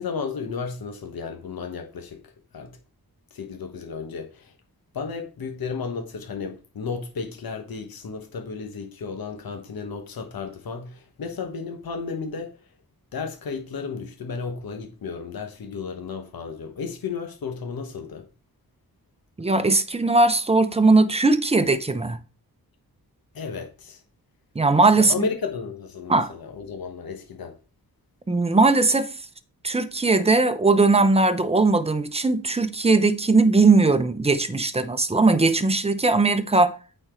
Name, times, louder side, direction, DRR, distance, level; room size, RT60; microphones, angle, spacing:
voice 1, 0.0-2.2 2.5-2.8 3.3-4.5 4.9-12.5 13.1-18.3 23.3-24.0 25.0-27.5, left 5 dB, 70° left, 1.3 m, -33 dB
voice 2, 19.4-22.2 24.5-25.1 26.1-26.3 28.3-29.1 29.6-36.7, right 3 dB, 15° right, 0.7 m, -19 dB
8.7 x 4.5 x 4.5 m
wide cardioid pair, 100°, 37 cm